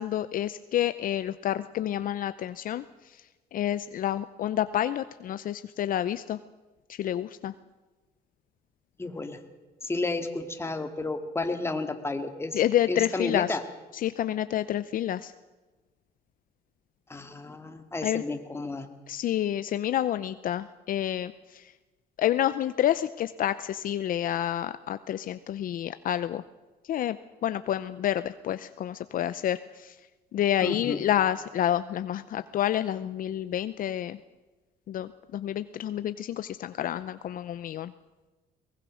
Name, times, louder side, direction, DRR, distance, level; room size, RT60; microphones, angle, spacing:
voice 1, 0.0-2.8 3.5-6.4 6.9-7.5 12.5-13.6 13.9-15.3 18.0-18.2 19.1-21.6 22.2-26.4 26.9-27.2 27.4-30.0 30.3-34.2 34.9-37.9, left 11 dB, 55° left, 12 dB, 0.6 m, -29 dB
voice 2, 9.0-9.4 9.8-12.6 12.9-13.6 17.1-18.9 30.6-31.1, left 3 dB, 15° left, 6 dB, 2.1 m, -32 dB
22.5 x 19.5 x 6.4 m, 1.2 s
cardioid pair, 110°, 17 cm